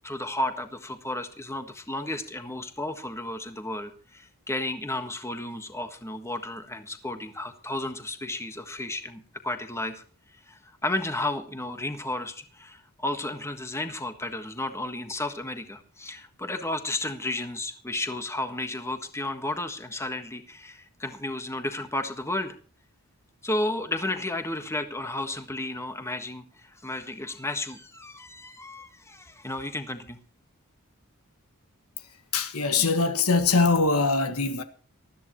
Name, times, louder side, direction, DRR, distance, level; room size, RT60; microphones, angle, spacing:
voice 1, 0.0-10.0 10.3-22.5 23.4-30.2, left 1 dB, 10° left, 1.5 m, -33 dB
voice 2, 32.3-34.6, left 4 dB, 70° left, 1.7 m, -22 dB
20.0 x 13.5 x 3.1 m
head